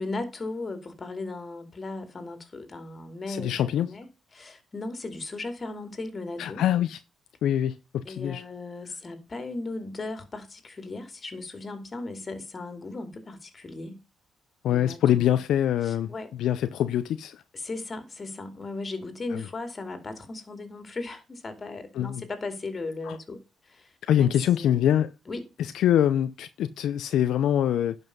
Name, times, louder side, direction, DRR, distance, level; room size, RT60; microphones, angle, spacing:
voice 1, 0.0-4.1 4.3-6.6 8.0-14.0 14.7-15.4 15.8-16.3 17.5-24.9 25.3-25.5, left 3 dB, 30° left, 2.7 m, -37 dB
voice 2, 3.3-3.9 6.4-7.0 7.4-8.4 14.6-16.1 16.4-17.4 19.3-19.4 21.9-22.2 23.1-23.2 24.0-25.1 25.6-28.0, left 10 dB, 75° left, 0.6 m, -24 dB
11.0 x 5.5 x 5.4 m
cardioid pair, 90°, 0 cm